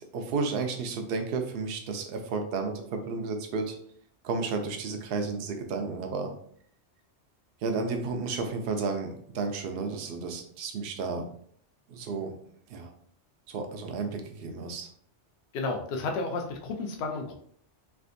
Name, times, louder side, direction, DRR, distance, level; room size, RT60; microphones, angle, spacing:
voice 1, 0.1-3.8 4.2-6.3 7.6-11.3 11.9-12.3 12.7-12.9 13.5-14.9, right 4 dB, 65° right, 4 dB, 0.7 m, -32 dB
voice 2, 15.5-17.3, left 3 dB, 65° left, 3 dB, 0.8 m, -32 dB
3.3 x 2.5 x 2.5 m, 0.62 s
omnidirectional pair, 1.2 m